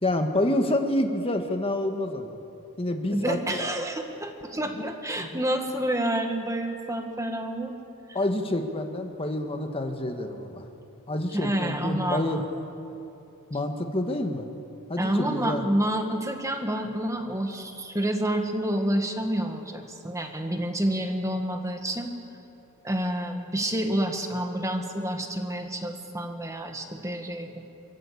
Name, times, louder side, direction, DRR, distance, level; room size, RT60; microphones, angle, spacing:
voice 1, 0.0-2.4 2.8-3.6 5.2-5.4 8.1-10.6 11.1-12.4 13.5-14.4 14.9-15.6, left 1 dB, 25° left, 5 dB, 1.6 m, -28 dB
voice 2, 3.1-7.7 8.1-8.2 11.3-12.5 15.0-22.1 22.8-27.6, right 1 dB, 15° right, 4 dB, 1.8 m, -29 dB
28.0 x 15.0 x 8.6 m, 2.9 s
head